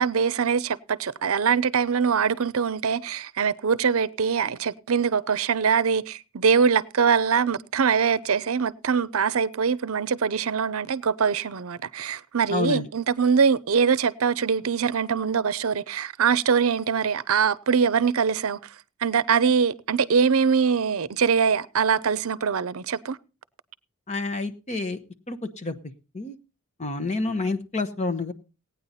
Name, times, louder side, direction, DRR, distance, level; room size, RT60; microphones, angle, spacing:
voice 1, 0.0-18.6 19.0-23.2, right 6 dB, 70° right, 0.6 m, -23 dB
voice 2, 12.5-12.8 24.1-25.0 25.3-25.7 26.1-26.4 26.8-28.3, left 3 dB, 30° left, 0.9 m, -28 dB
17.0 x 9.4 x 4.2 m
head